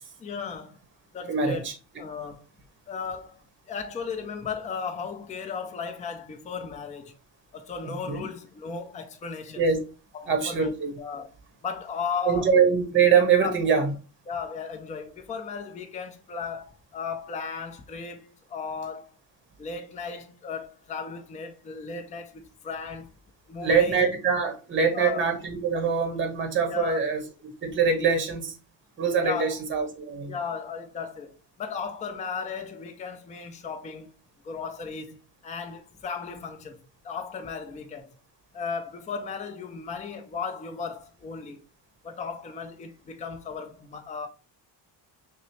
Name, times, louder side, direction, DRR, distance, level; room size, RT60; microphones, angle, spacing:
voice 1, 0.2-0.8 1.1-1.7 2.0-2.5 2.9-3.4 3.7-7.2 7.5-9.6 10.1-11.3 11.6-12.5 13.4-13.5 14.3-19.2 19.6-23.1 23.5-24.0 24.9-25.3 26.7-27.0 29.2-29.6 30.3-34.2 34.4-36.8 37.0-38.2 38.5-41.6 42.0-44.3, left 5 dB, 20° left, 0.3 m, -35 dB
voice 2, 1.3-1.7 7.8-8.2 9.6-9.8 10.3-10.9 12.3-13.9 23.6-28.5 29.0-30.3, right 6 dB, 30° right, 0.8 m, -24 dB
5.5 x 2.0 x 3.0 m
cardioid pair, 175°, 43 cm